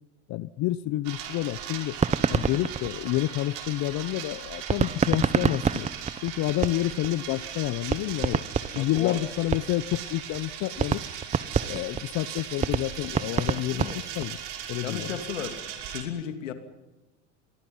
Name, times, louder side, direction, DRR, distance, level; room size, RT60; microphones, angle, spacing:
voice 1, 0.3-2.0 2.3-5.9 6.2-8.4 8.7-11.1 11.7-14.4 14.7-15.1, left 16 dB, 50° left, 15 dB, 1.0 m, -29 dB
sound 1, 1.0-16.0, right 9 dB, 60° right, 5.7 m, -38 dB
sound 2, 1.9-3.7 4.7-7.1 7.5-7.6 7.9-10.0 10.3-10.4 10.8-14.4, right 6 dB, 20° right, 0.9 m, -27 dB
voice 2, 8.8-9.2 13.7-14.0 14.8-15.6 15.9-16.5, left 9 dB, 90° left, 7 dB, 3.0 m, -34 dB
29.5 x 23.0 x 5.6 m, 1.1 s
hypercardioid pair, 95°, 37 cm